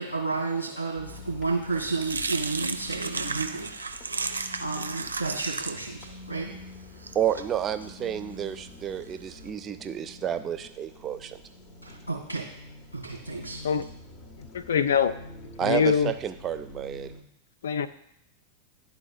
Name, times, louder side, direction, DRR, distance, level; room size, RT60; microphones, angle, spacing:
voice 1, 0.0-4.3 4.6-6.6 11.8-12.5 12.9-13.6, right 3 dB, 90° left, -2 dB, 2.4 m, -32 dB
sound 1, 0.9-17.2, left 2 dB, 35° left, 0.8 m, -47 dB
sound 2, 1.2-9.5, right 4 dB, 80° right, 0.4 m, -35 dB
voice 2, 7.1-11.4 15.6-17.1, right 9 dB, 25° right, 11 dB, 0.5 m, -30 dB
voice 3, 14.5-15.2 15.6-16.1 17.6-17.9, left 7 dB, 65° left, 12 dB, 0.3 m, -23 dB
11.5 x 4.0 x 2.4 m, 0.77 s
figure-of-eight pair, 90°, 0 cm